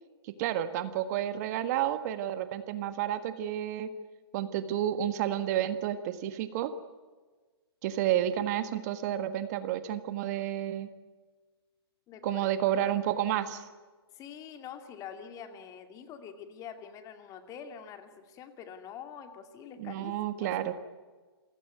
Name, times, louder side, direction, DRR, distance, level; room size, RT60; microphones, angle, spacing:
voice 1, 0.4-3.9 4.3-6.7 7.8-10.9 12.2-13.7 19.8-20.7, right 11 dB, 40° right, 11 dB, 1.6 m, -30 dB
voice 2, 12.1-13.0 14.1-20.7, left 8 dB, 25° left, 7 dB, 2.4 m, -46 dB
28.5 x 16.5 x 9.4 m, 1.4 s
hypercardioid pair, 130°, 14 cm